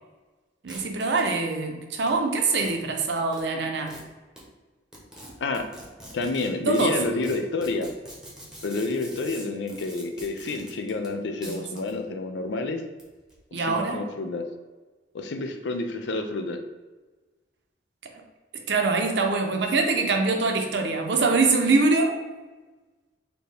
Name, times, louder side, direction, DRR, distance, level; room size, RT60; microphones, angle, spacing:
voice 1, 0.6-4.0 6.7-7.0 11.4-11.9 13.5-14.0 18.7-22.2, right 3 dB, 70° right, 3 dB, 0.6 m, -24 dB
sound 1, 0.7-1.3 2.1-2.2 2.6-2.7 3.3-3.4 3.9-4.0 4.4-4.5 4.9-11.1 11.4-12.0 12.8-13.4, right 1 dB, 5° right, 0.9 m, -44 dB
voice 2, 6.1-7.9 8.6-12.8 13.6-14.4 15.1-16.6, left 3 dB, 80° left, 6 dB, 0.5 m, -29 dB
4.3 x 2.8 x 3.3 m, 1.3 s
head